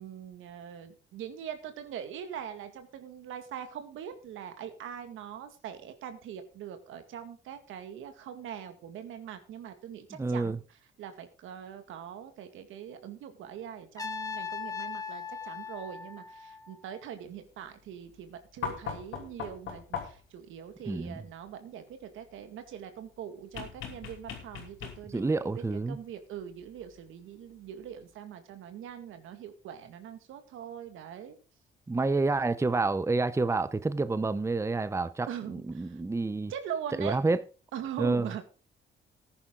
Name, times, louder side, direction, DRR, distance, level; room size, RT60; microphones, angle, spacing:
voice 1, 0.0-10.6 11.0-31.4 35.3-36.0 36.5-37.2 37.7-38.4, right 9 dB, 85° right, 2.1 m, -42 dB
voice 2, 10.2-10.6 20.9-21.2 25.1-26.0 31.9-36.5 37.0-37.4 38.0-38.3, right 3 dB, 15° right, 0.7 m, -28 dB
Trumpet, 14.0-16.9, left 6 dB, 20° left, 1.3 m, -39 dB
sound 1, 18.6-20.4 23.5-25.3 26.8-26.9, left 7 dB, 90° left, 3.0 m, -39 dB
14.5 x 10.0 x 3.8 m
cardioid pair, 90°, 20 cm